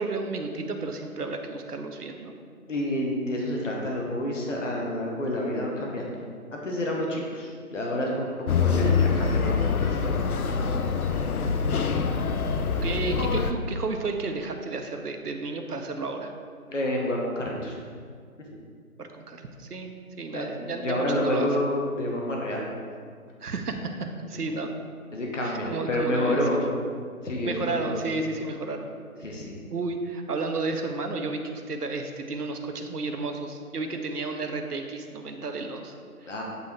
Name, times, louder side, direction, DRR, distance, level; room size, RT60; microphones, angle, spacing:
voice 1, 0.0-2.3 12.8-16.3 19.0-21.5 23.4-23.9 24.3-24.7 25.4-26.6 27.4-28.9 29.7-36.4, right 3 dB, 80° right, 5 dB, 0.8 m, -32 dB
voice 2, 2.7-6.2 6.5-10.0 16.7-17.8 18.5-18.6 20.3-22.7 25.1-26.6 27.2-28.0 29.2-29.6 36.2-36.4, left 1 dB, 55° left, -1 dB, 1.0 m, -29 dB
sound 1, 8.5-13.5, left 5 dB, 70° left, 0.5 m, -25 dB
8.2 x 2.8 x 4.5 m, 2.1 s
figure-of-eight pair, 165°, 45 cm